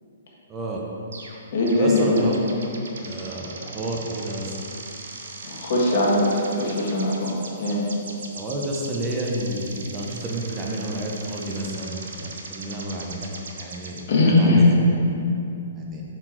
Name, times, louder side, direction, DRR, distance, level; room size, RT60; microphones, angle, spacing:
voice 1, 0.5-0.8 1.7-2.4 3.0-4.5 8.3-13.3 13.5-14.0 14.3-14.7 15.8-16.0, right 1 dB, 20° right, -2 dB, 0.9 m, -30 dB
sound 1, 1.1-1.4 1.7-14.0, right 3 dB, 70° right, 0.7 m, -39 dB
voice 2, 1.5-2.3 5.4-7.8 14.1-14.6, left 2 dB, 60° left, -3 dB, 1.5 m, -20 dB
5.8 x 4.5 x 4.5 m, 2.7 s
hypercardioid pair, 125°, 0 cm